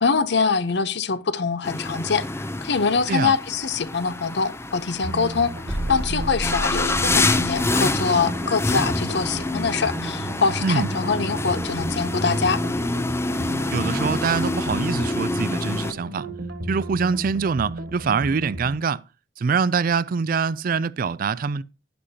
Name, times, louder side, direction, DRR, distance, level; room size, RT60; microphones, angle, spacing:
voice 1, 0.0-2.3 2.6-12.6, left 5 dB, 65° left, 0.7 m, -24 dB
sound 1, 1.6-15.9, left 2 dB, 15° left, 0.5 m, -27 dB
sound 2, 5.0-18.7, right 1 dB, 65° right, 1.9 m, -34 dB
sound 3, 5.7-8.4, right 1 dB, 10° right, 0.8 m, -32 dB
voice 2, 13.7-16.3 16.7-19.0 19.4-21.6, right 5 dB, 50° right, 0.4 m, -24 dB
11.5 x 10.0 x 2.8 m
head